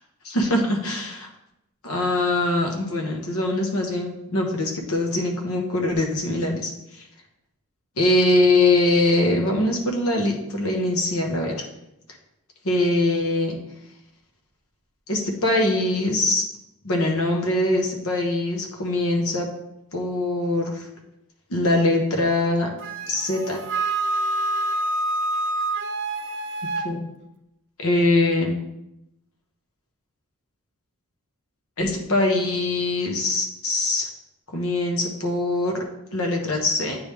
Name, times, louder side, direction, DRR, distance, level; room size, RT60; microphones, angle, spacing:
voice 1, 0.2-1.3 1.8-6.7 8.0-11.6 12.6-13.6 15.1-16.4 16.8-19.5 19.9-20.8 21.5-22.7 23.1-23.6 26.8-27.0 27.8-28.5 31.8-34.1 34.5-35.8 36.1-37.0, left 2 dB, 70° left, 1 dB, 1.1 m, -22 dB
Wind instrument woodwind instrument, 22.8-26.9, right 2 dB, 55° right, 0.5 m, -26 dB
9.0 x 3.4 x 3.3 m, 0.86 s
head